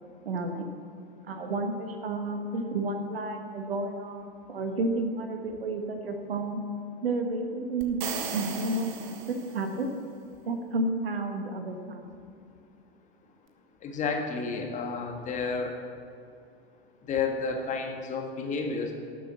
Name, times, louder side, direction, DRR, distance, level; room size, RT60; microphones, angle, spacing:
voice 1, 0.2-0.7 1.3-6.6 7.0-9.9 10.4-12.0, right 2 dB, 65° right, 5 dB, 1.5 m, -31 dB
sound 1, 7.8-9.9, right 7 dB, 45° right, 1.3 m, -37 dB
voice 2, 13.8-15.7 17.1-18.9, left 4 dB, 25° left, 3 dB, 1.5 m, -31 dB
12.0 x 7.8 x 7.4 m, 2.5 s
figure-of-eight pair, 95°, 32 cm